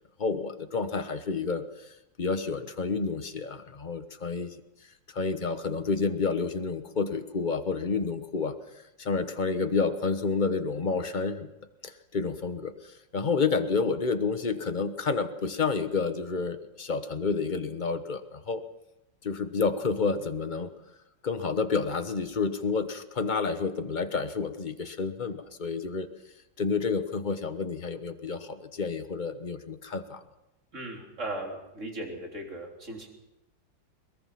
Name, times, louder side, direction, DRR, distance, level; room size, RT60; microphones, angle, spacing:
voice 1, 0.2-4.5 5.1-8.6 9.0-11.5 11.8-18.6 19.2-20.7 21.2-26.1 26.6-30.2, left 4 dB, 30° left, 9 dB, 0.9 m, -29 dB
voice 2, 30.7-33.1, right 1 dB, 35° right, 1 dB, 3.8 m, -37 dB
22.0 x 21.5 x 5.9 m, 0.94 s
omnidirectional pair, 2.1 m